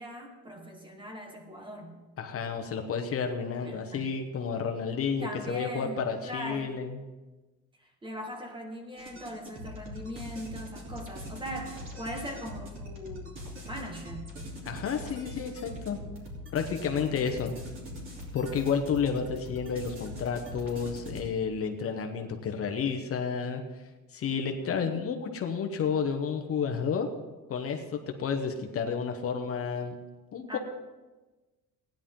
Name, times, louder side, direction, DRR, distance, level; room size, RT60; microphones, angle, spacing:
voice 1, 0.0-2.0 3.6-4.1 5.2-6.7 7.8-14.3 24.6-24.9 30.5-30.6, equal, 15° right, 3 dB, 1.4 m, -40 dB
voice 2, 2.2-7.0 14.6-16.0 16.5-17.6 18.3-23.6 24.1-27.1 27.5-29.9 30.3-30.6, left 6 dB, 45° left, 5 dB, 0.9 m, -31 dB
sound 1, 9.0-21.2, equal, 40° right, 3.1 m, -42 dB
16.5 x 10.5 x 3.7 m, 1.2 s
cardioid pair, 165°, 32 cm